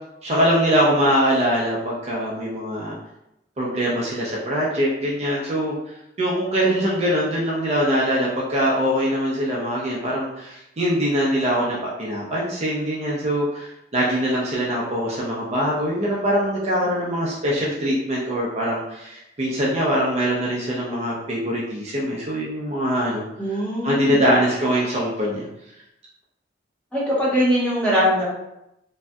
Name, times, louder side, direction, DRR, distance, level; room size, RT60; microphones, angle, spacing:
voice 1, 0.2-2.9 3.6-5.8 6.2-23.2 23.8-25.5, equal, 35° right, -5 dB, 0.5 m, -23 dB
voice 2, 23.4-24.2 26.9-28.2, equal, 5° left, -8 dB, 1.0 m, -21 dB
3.2 x 2.6 x 2.3 m, 0.86 s
head